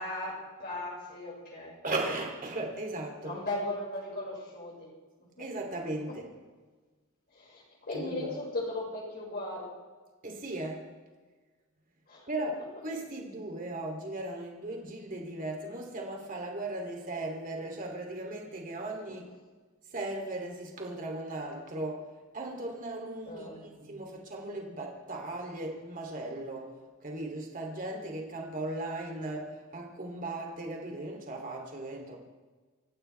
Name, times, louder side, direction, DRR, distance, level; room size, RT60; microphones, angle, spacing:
voice 1, 0.0-1.7 3.2-4.9 7.3-9.7 12.1-12.3 23.3-23.9, left 2 dB, 50° left, -5 dB, 5.7 m, -37 dB
voice 2, 1.8-3.4 5.4-6.3 7.9-8.3 10.2-10.9 12.3-19.3 19.9-22.1 22.3-32.2, right 2 dB, 40° right, 1 dB, 3.1 m, -37 dB
27.0 x 15.0 x 3.4 m, 1.4 s
head